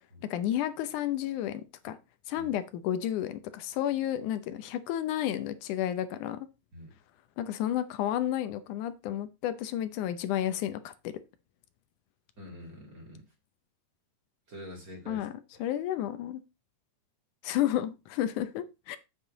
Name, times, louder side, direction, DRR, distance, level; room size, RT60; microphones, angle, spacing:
voice 1, 0.3-2.0 2.3-6.5 7.4-11.1 15.1-15.3 15.6-16.4 17.4-19.0, left 11 dB, 80° left, 2.2 m, -31 dB
voice 2, 12.4-13.3 14.5-15.3 15.5-15.6, left 1 dB, 30° right, 2.5 m, -46 dB
7.7 x 7.4 x 3.9 m
omnidirectional pair, 3.6 m